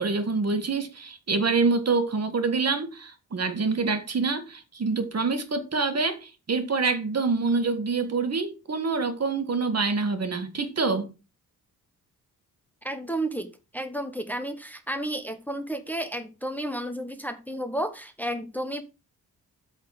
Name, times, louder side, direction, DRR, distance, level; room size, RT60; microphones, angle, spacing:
voice 1, 0.0-11.1, right 4 dB, 45° right, 1.7 m, -26 dB
voice 2, 12.8-13.5 13.7-18.8, right 1 dB, 5° left, 1.1 m, -32 dB
8.2 x 4.2 x 6.4 m
cardioid pair, 75°, 37 cm